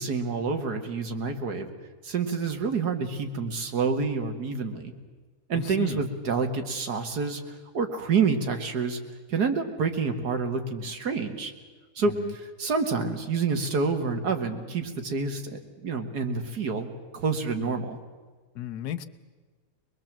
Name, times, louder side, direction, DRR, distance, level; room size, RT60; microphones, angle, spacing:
voice 1, 0.0-1.7 2.0-4.9 5.5-9.0 9.3-11.5 12.0-16.9 17.1-18.0, right 5 dB, 75° right, 6 dB, 2.3 m, -28 dB
voice 2, 5.5-6.0 12.2-12.3 18.5-19.1, left 11 dB, 80° left, 13 dB, 1.5 m, -34 dB
23.5 x 21.5 x 7.5 m, 1.4 s
omnidirectional pair, 1.7 m